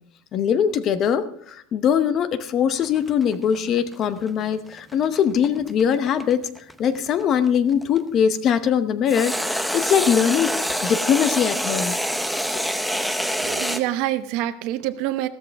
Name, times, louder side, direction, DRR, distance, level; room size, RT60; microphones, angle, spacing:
voice 1, 0.3-6.5 6.8-10.5 10.8-12.0, left 8 dB, 30° left, 12 dB, 0.8 m, -21 dB
sound 1, 2.8-8.0 9.1-13.8, equal, ahead, 0.6 m, -26 dB
voice 2, 13.4-15.3, right 14 dB, 50° right, 12 dB, 0.8 m, -26 dB
15.0 x 13.5 x 3.5 m, 0.65 s
supercardioid pair, 160°, 0 cm